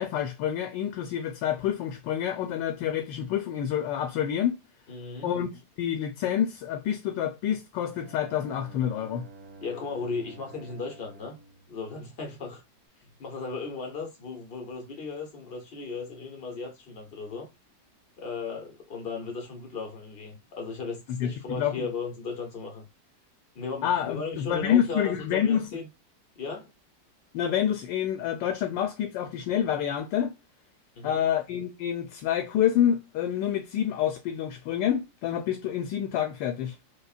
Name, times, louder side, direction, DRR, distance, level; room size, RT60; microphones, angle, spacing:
voice 1, 0.0-4.6 5.2-9.2 21.2-21.9 23.8-25.7 27.3-30.3 31.0-36.7, left 10 dB, 75° left, 1.2 m, -28 dB
voice 2, 4.9-5.3 9.6-11.4 11.7-12.6 13.2-17.5 18.2-22.8 23.5-25.9 26.4-26.7 31.0-31.3, left 4 dB, 60° left, 0.6 m, -36 dB
Bowed string instrument, 7.8-12.6, right 3 dB, 75° right, 1.7 m, -50 dB
5.2 x 2.1 x 2.4 m
omnidirectional pair, 2.0 m